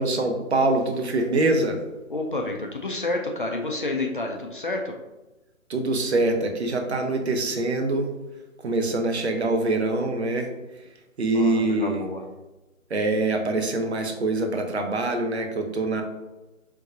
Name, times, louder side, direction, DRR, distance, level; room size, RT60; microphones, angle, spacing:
voice 1, 0.0-1.8 5.7-8.1 8.6-10.5 11.2-12.0 12.9-16.0, right 2 dB, 50° right, 4 dB, 0.7 m, -24 dB
voice 2, 2.1-4.9 11.3-12.2, left 2 dB, 40° left, 2 dB, 0.5 m, -29 dB
4.6 x 3.8 x 2.4 m, 1.0 s
figure-of-eight pair, 140°, 41 cm